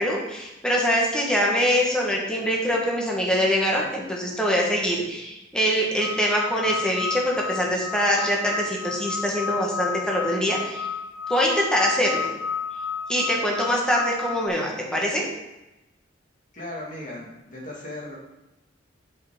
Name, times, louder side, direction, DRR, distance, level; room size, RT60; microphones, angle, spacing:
voice 1, 0.0-10.9 11.3-12.3 13.1-15.2, equal, 5° left, -3 dB, 1.4 m, -24 dB
sound 1, 6.0-14.5, left 6 dB, 85° left, 0.4 m, -32 dB
voice 2, 16.5-18.2, left 1 dB, 40° left, -3 dB, 2.1 m, -37 dB
7.9 x 5.7 x 3.7 m, 0.97 s
head